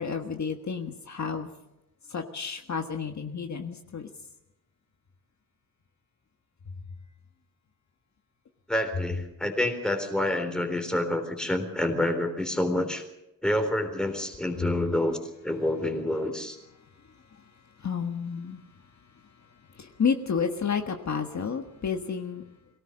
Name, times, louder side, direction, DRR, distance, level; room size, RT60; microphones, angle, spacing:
voice 1, 0.0-1.5 2.1-4.1 14.6-14.7 16.8-22.4, left 6 dB, 45° left, 4 dB, 1.6 m, -32 dB
voice 2, 8.7-13.0 13.4-15.2 15.4-16.6, left 1 dB, ahead, 5 dB, 3.7 m, -28 dB
23.5 x 18.0 x 6.5 m, 0.88 s
wide cardioid pair, 160°, 38 cm